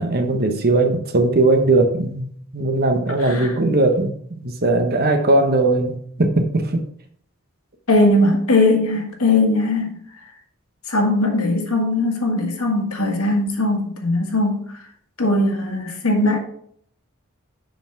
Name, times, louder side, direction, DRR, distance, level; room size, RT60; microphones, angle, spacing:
voice 1, 0.0-6.8, right 2 dB, 45° right, 6 dB, 1.0 m, -19 dB
voice 2, 3.2-3.5 7.9-10.0 10.9-14.7 15.2-16.4, left 2 dB, 75° left, 2 dB, 1.7 m, -19 dB
7.1 x 5.6 x 4.6 m, 0.63 s
head